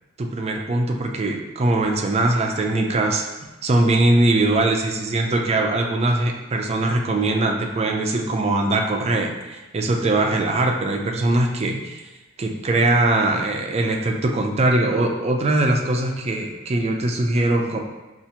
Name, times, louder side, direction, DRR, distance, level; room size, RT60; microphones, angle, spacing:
voice 1, 0.2-3.3 3.6-12.0 12.4-17.8, right 2 dB, 30° right, 2 dB, 0.4 m, -21 dB
5.7 x 2.4 x 2.8 m, 1.1 s
head